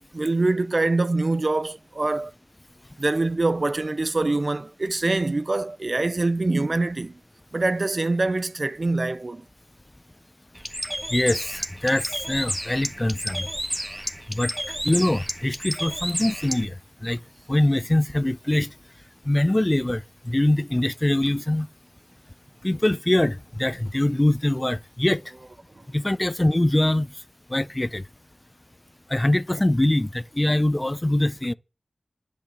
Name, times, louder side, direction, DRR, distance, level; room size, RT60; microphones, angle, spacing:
voice 1, 0.1-2.3 3.0-7.2 7.5-9.4 25.8-25.9, right 2 dB, 55° right, 0.5 m, -24 dB
Bird, 10.6-16.6, equal, 10° right, 1.5 m, -31 dB
voice 2, 11.1-13.4 14.3-14.5 14.8-16.7 17.0-17.2 17.5-18.7 19.3-21.7 22.6-25.2 25.9-27.1 27.5-28.0 29.1-31.5, left 1 dB, 25° left, 0.5 m, -23 dB
10.0 x 8.3 x 8.3 m
cardioid pair, 45°, 0 cm